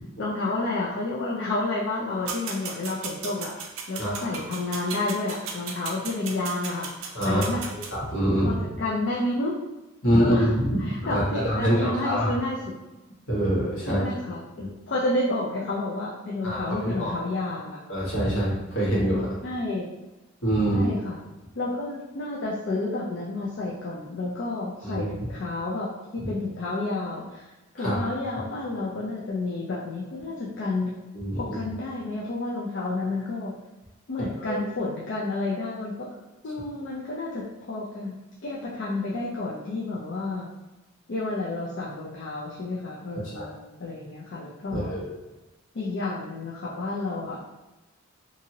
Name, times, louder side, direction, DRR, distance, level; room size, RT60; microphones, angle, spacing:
voice 1, 0.2-3.5 3.9-7.6 8.4-9.6 10.2-10.5 10.8-12.7 13.9-17.8 19.4-19.9 20.7-21.2 21.6-30.9 31.4-33.6 34.1-36.1 36.4-40.5 41.1-44.9 45.7-47.4, left 2 dB, 55° left, -5 dB, 0.4 m, -30 dB
sound 1, 2.3-7.9, right 5 dB, 70° right, 0.4 m, -36 dB
voice 2, 4.0-4.4 7.1-8.6 10.0-10.8 11.0-12.3 13.3-14.0 14.6-14.7 16.4-17.1 17.9-19.3 20.4-20.9 24.8-25.1 27.8-28.0 31.1-31.4 34.4-34.6 43.3-43.5 44.7-45.1, equal, 70° left, -6 dB, 1.2 m, -25 dB
2.8 x 2.6 x 2.7 m, 1.1 s
head